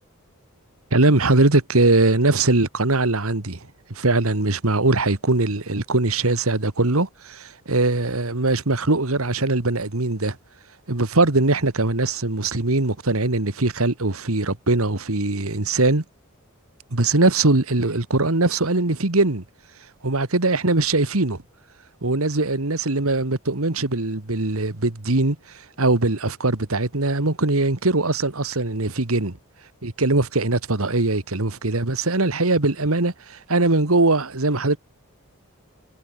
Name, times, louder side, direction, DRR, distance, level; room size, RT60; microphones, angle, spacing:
voice 1, 0.9-3.6 3.9-10.4 10.9-16.0 16.9-19.4 20.0-21.4 22.0-25.4 25.8-29.4 29.8-34.8, right 2 dB, 70° right, 1.9 m, -21 dB
head